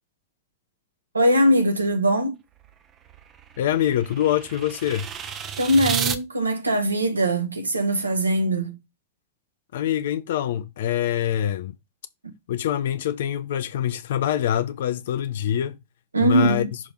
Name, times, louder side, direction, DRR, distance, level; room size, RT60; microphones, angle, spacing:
voice 1, 1.1-2.4 5.6-8.8 16.1-16.7, right 1 dB, 80° right, 1.3 m, -21 dB
sound 1, 2.6-6.2, right 7 dB, 30° right, 0.8 m, -32 dB
voice 2, 3.6-5.1 9.7-11.7 12.5-15.8 16.2-16.7, left 10 dB, 60° left, 0.7 m, -25 dB
6.1 x 3.4 x 5.7 m
figure-of-eight pair, 90°, 0 cm